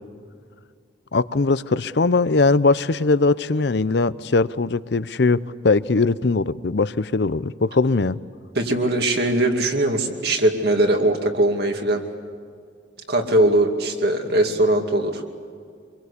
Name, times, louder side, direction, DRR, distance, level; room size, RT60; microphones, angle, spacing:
voice 1, 1.1-8.2, left 3 dB, 60° left, 16 dB, 0.6 m, -20 dB
voice 2, 8.5-12.0 13.1-15.2, right 1 dB, 55° right, 3 dB, 2.4 m, -20 dB
26.0 x 22.5 x 8.3 m, 2.1 s
head